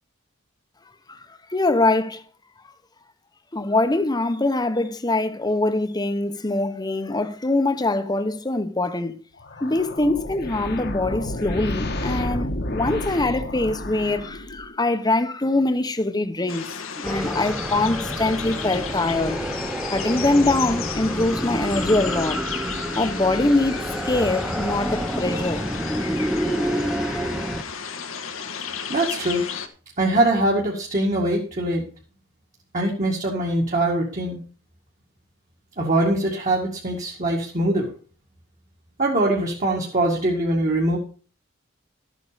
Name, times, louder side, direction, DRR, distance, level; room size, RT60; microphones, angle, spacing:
voice 1, 1.5-2.2 3.5-9.2 9.6-16.7 17.0-19.4 19.9-22.4 23.0-25.7 26.4-27.2, left 2 dB, 20° left, 1.0 m, -23 dB
sound 1, 9.4-14.8, left 1 dB, 55° left, 1.4 m, -31 dB
sound 2, 16.5-29.7, left 6 dB, 90° left, 1.5 m, -34 dB
sound 3, 17.0-27.6, equal, 5° right, 0.6 m, -28 dB
voice 2, 28.9-29.5 30.0-31.8 32.7-34.4 35.8-37.9 39.0-41.0, right 1 dB, 40° right, 2.1 m, -22 dB
13.0 x 8.3 x 5.1 m
head